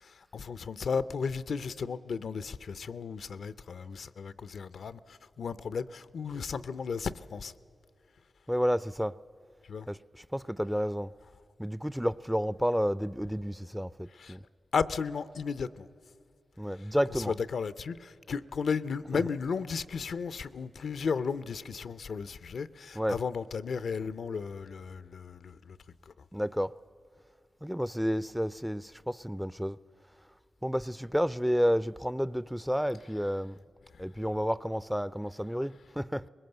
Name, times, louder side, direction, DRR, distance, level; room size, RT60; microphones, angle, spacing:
voice 1, 0.0-7.5 9.7-9.9 14.2-14.4 14.7-15.9 17.3-25.8 26.1-26.2, left 5 dB, 75° left, 0.5 m, -34 dB
voice 2, 8.5-9.2 9.9-11.1 11.6-14.4 16.6-17.4 19.1-19.3 22.9-23.2 26.3-26.7 27.6-29.8 30.6-33.6 34.0-36.2, equal, 5° right, 0.4 m, -31 dB
20.5 x 19.0 x 7.9 m
supercardioid pair, 40°, 0 cm